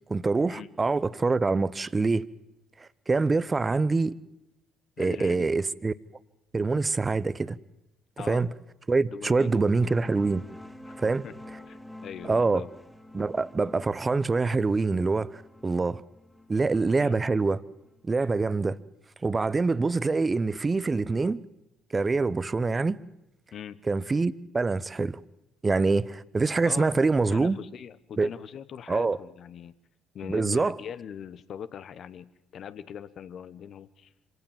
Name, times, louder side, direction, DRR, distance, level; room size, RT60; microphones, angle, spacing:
voice 1, 0.1-2.3 2.8-4.1 5.0-5.9 6.5-7.6 8.3-8.5 8.9-10.4 11.0-11.2 12.2-12.6 13.1-16.0 16.5-17.6 18.0-18.8 19.2-21.4 21.9-23.0 23.9-25.2 25.6-27.6 28.2-28.3 28.9-29.2 30.2-30.8, right 3 dB, 30° right, 0.8 m, -25 dB
voice 2, 5.0-5.5 8.2-8.5 9.0-9.7 10.9-11.0 11.2-11.3 11.7-12.7 16.9-17.2 23.5-23.8 26.6-27.0 27.3-29.7 30.1-34.1, left 8 dB, 55° left, 1.1 m, -41 dB
sound 1, 9.4-18.7, left 1 dB, 10° left, 2.2 m, -49 dB
26.0 x 17.5 x 7.4 m
hypercardioid pair, 55°, 0 cm